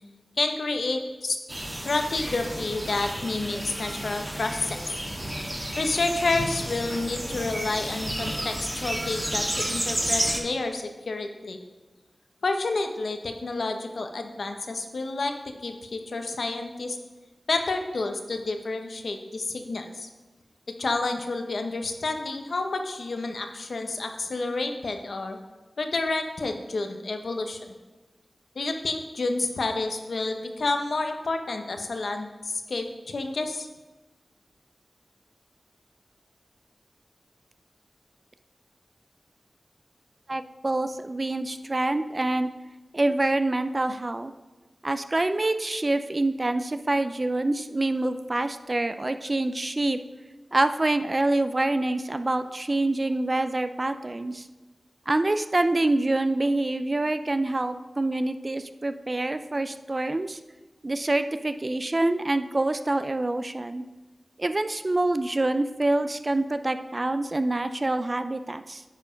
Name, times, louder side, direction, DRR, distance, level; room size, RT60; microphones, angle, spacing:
voice 1, 0.4-1.4 1.8-4.8 5.8-11.6 12.4-17.0 17.5-20.1 20.7-25.4 25.8-27.6 28.5-33.7, left 3 dB, 80° left, 5 dB, 0.9 m, -29 dB
sound 1, 1.5-10.4, right 1 dB, 20° right, 1.7 m, -31 dB
voice 2, 40.3-42.5 42.9-44.3 44.8-50.0 50.5-54.5 55.1-60.4 60.8-63.8 64.4-68.8, right 2 dB, 40° right, 10 dB, 0.4 m, -26 dB
10.5 x 4.7 x 5.1 m, 1.2 s
wide cardioid pair, 50°, 0 cm